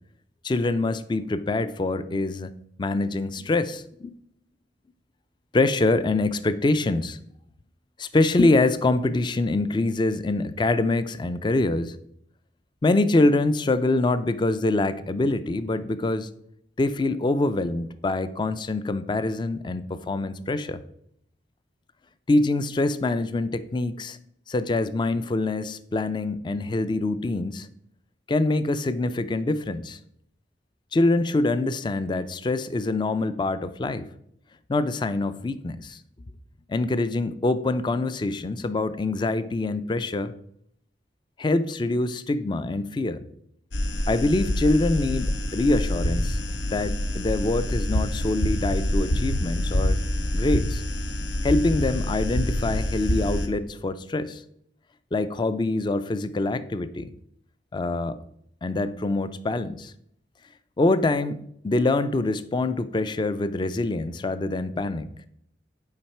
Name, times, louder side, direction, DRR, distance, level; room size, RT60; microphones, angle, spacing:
voice 1, 0.4-2.5 2.8-4.1 5.5-7.2 8.0-12.0 12.8-16.3 16.8-20.8 22.3-24.2 24.5-27.7 28.3-30.0 30.9-34.1 34.7-36.0 36.7-40.3 41.4-43.3 44.1-46.4 46.7-50.0 50.3-50.8 51.4-54.4 55.1-57.1 57.7-58.2 58.6-59.9 60.8-65.1, left 2 dB, 25° left, 14 dB, 0.3 m, -25 dB
sound 1, 43.7-53.5, left 1 dB, 85° left, 0.8 m, -26 dB
7.3 x 4.8 x 4.4 m, 0.73 s
head